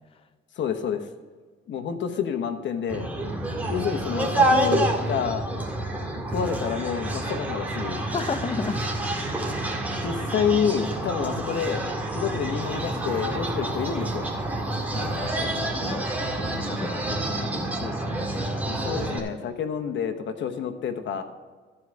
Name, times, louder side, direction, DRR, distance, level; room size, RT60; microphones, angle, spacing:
voice 1, 0.6-1.1 1.7-3.1 3.6-5.4 6.1-8.0 10.0-11.8 12.1-14.3 18.6-21.2, left 7 dB, 70° left, 8 dB, 1.1 m, -28 dB
sound 1, 2.9-19.2, right 1 dB, 10° right, 1.9 m, -28 dB
voice 2, 8.1-8.8 14.9-18.4, left 5 dB, 30° left, 10 dB, 0.5 m, -34 dB
14.0 x 4.8 x 6.3 m, 1.4 s
cardioid pair, 90°, 20 cm